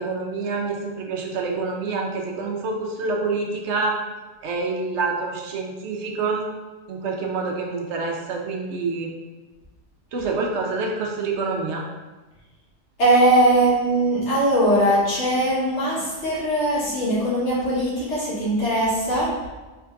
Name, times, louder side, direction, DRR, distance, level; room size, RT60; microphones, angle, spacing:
voice 1, 0.0-4.0 4.4-6.5 6.9-9.1 10.1-11.8, right 4 dB, 85° right, 1 dB, 1.0 m, -27 dB
voice 2, 13.0-19.3, right 1 dB, 80° left, -8 dB, 1.7 m, -20 dB
4.5 x 3.5 x 2.5 m, 1.2 s
omnidirectional pair, 1.2 m